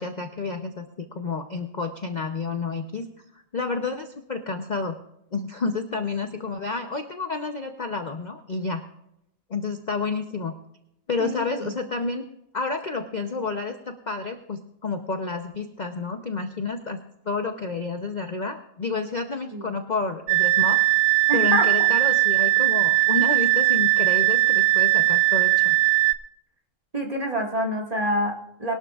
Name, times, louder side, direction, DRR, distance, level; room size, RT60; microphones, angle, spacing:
voice 1, 0.0-3.1 3.5-5.0 5.3-8.8 9.5-10.5 11.1-12.3 12.5-20.8 21.3-25.8, left 4 dB, 40° left, 6 dB, 0.7 m, -30 dB
voice 2, 11.2-11.8 19.5-19.8 21.3-21.9 26.9-28.7, right 1 dB, 25° right, 0 dB, 1.9 m, -27 dB
sound 1, 20.3-26.1, right 19 dB, 65° right, 0.8 m, -19 dB
21.0 x 12.0 x 2.4 m, 0.82 s
omnidirectional pair, 1.4 m